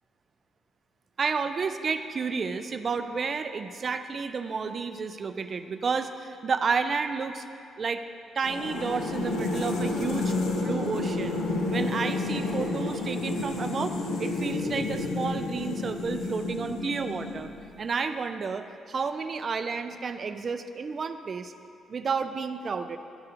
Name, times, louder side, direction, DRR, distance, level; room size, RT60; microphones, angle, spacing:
voice 1, 1.2-7.4 7.8-8.0 8.4-17.5 17.8-21.5 21.9-23.0, right 5 dB, 45° right, 9 dB, 0.4 m, -31 dB
sound 1, 8.4-17.8, left 2 dB, 90° left, 0.6 m, -30 dB
12.5 x 4.2 x 2.6 m, 2.6 s
cardioid pair, 90°, 0 cm